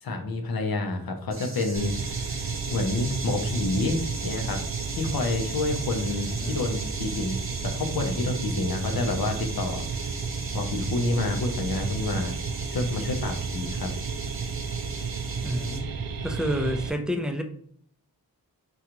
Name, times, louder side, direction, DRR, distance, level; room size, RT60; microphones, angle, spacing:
voice 1, 0.0-4.6 4.9-10.1 10.5-12.3 12.7-13.9, left 2 dB, 70° left, 3 dB, 0.6 m, -29 dB
sound 1, 1.3-15.8, right 2 dB, 35° right, 0.7 m, -39 dB
sound 2, 1.8-16.9, right 5 dB, 70° right, 0.5 m, -32 dB
voice 2, 6.2-6.6 15.4-15.9 16.2-17.4, equal, ahead, 5 dB, 0.4 m, -29 dB
3.7 x 2.3 x 2.9 m, 0.62 s
wide cardioid pair, 60°, 37 cm